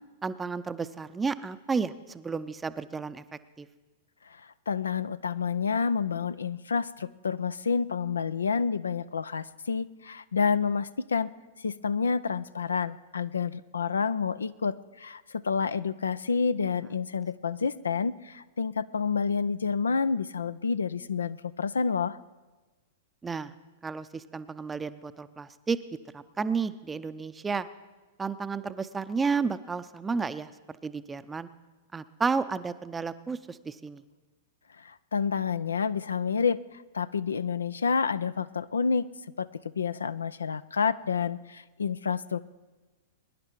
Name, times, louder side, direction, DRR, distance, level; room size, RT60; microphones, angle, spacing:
voice 1, 0.2-3.2 3.6-3.7 23.2-23.5 23.8-25.8 26.1-27.7 28.2-31.5 31.9-34.0, right 5 dB, 15° right, 13 dB, 0.6 m, -32 dB
voice 2, 4.7-11.3 11.6-22.2 34.8-36.6 36.9-39.1 39.4-39.5 39.8-42.5, left 5 dB, 75° left, 15 dB, 0.4 m, -29 dB
22.5 x 11.0 x 4.6 m, 1.3 s
figure-of-eight pair, 100°, 0 cm